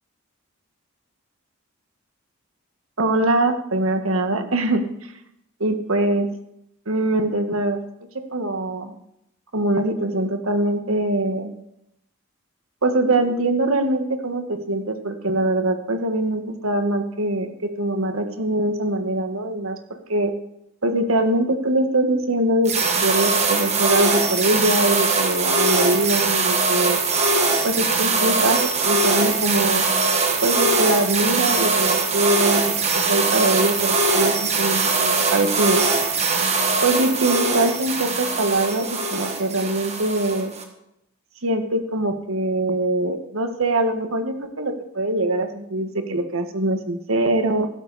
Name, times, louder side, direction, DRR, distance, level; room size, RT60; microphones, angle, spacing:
voice 1, 3.0-4.8 5.6-6.3 6.9-7.8 8.3-8.9 9.5-11.5 12.8-17.5 17.8-19.8 20.1-20.3 20.8-27.0 27.6-29.8 30.4-32.6 33.1-35.8 36.8-40.5 41.4-47.7, right 2 dB, 80° right, 7 dB, 1.5 m, -22 dB
sound 1, 22.7-40.6, right 3 dB, 30° right, 1.4 m, -21 dB
14.5 x 12.5 x 4.1 m, 0.81 s
head